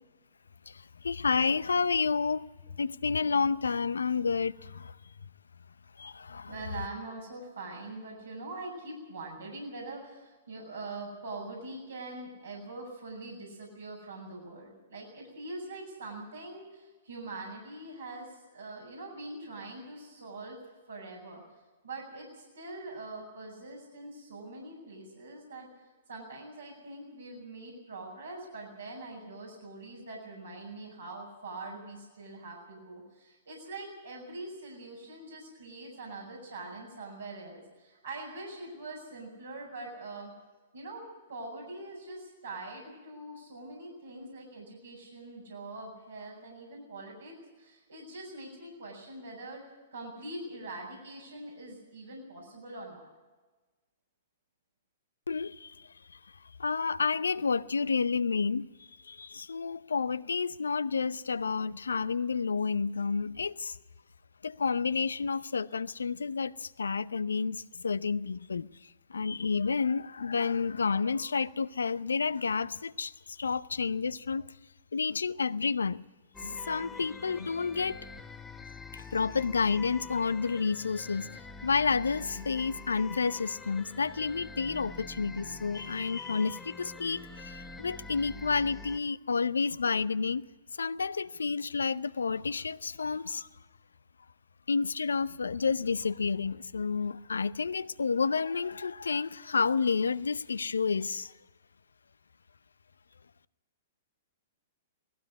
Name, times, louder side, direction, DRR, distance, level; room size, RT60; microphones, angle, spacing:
voice 1, 1.0-2.5 2.8-4.9 6.0-6.5 55.3-55.7 56.6-58.6 59.1-63.8 64.4-68.7 69.1-74.5 74.9-76.0 76.4-78.1 78.9-81.3 81.6-90.4 90.8-93.5 94.7-101.3, left 5 dB, 85° left, 0.6 m, -30 dB
voice 2, 6.5-20.6 20.9-21.4 21.8-25.7 26.1-40.3 40.7-49.6 49.9-53.1, right 2 dB, 85° right, 6.5 m, -43 dB
sound 1, 76.3-89.0, left 4 dB, 10° left, 1.1 m, -46 dB
18.5 x 15.5 x 9.7 m
hypercardioid pair, 115°, 0 cm